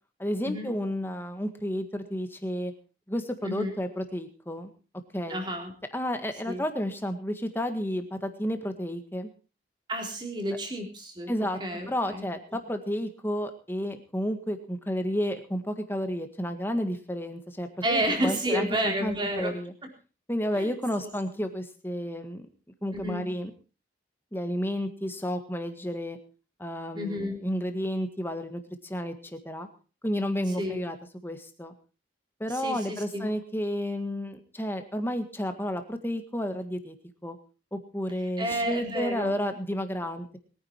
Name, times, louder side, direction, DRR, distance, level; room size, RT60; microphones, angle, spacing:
voice 1, 0.2-2.7 3.1-4.7 5.1-5.5 5.9-9.3 11.3-11.6 11.9-19.7 20.3-22.5 22.8-23.5 24.3-26.2 26.6-29.7 30.0-31.0 31.2-31.7 32.4-37.0 37.2-37.4 37.7-40.4, equal, 10° left, 7 dB, 1.7 m, -31 dB
voice 2, 3.4-3.7 5.3-5.7 6.5-6.6 9.9-11.3 11.6-12.2 17.8-19.5 20.6-20.7 21.0-21.1 22.9-23.2 26.9-27.4 30.6-30.8 32.5-33.3 38.4-39.4, equal, 25° right, 2 dB, 3.9 m, -30 dB
22.0 x 10.0 x 4.6 m, 0.35 s
head